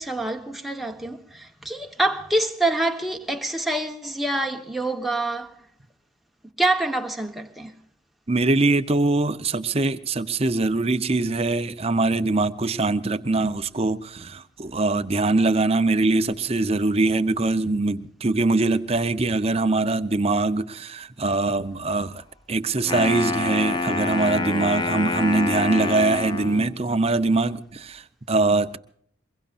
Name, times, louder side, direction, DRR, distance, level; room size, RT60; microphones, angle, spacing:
voice 1, 0.0-5.5 6.6-7.7, right 2 dB, ahead, 1.2 m, -26 dB
voice 2, 8.3-22.2 22.5-28.8, right 3 dB, 30° right, 0.8 m, -23 dB
Wind instrument woodwind instrument, 22.8-26.8, left 3 dB, 25° left, 0.8 m, -26 dB
23.5 x 22.0 x 2.5 m
head